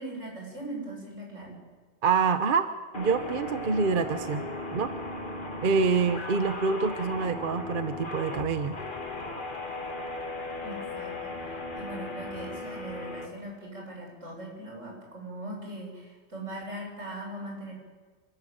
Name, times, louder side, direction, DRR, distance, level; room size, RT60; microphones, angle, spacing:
voice 1, 0.0-1.6 10.6-17.7, right 1 dB, 85° right, -1 dB, 7.4 m, -40 dB
voice 2, 2.0-4.9 5.6-8.8, right 5 dB, 50° right, 10 dB, 1.0 m, -26 dB
sound 1, 2.9-13.2, left 2 dB, 45° left, 2.0 m, -37 dB
27.0 x 14.5 x 9.0 m, 1.4 s
omnidirectional pair, 1.2 m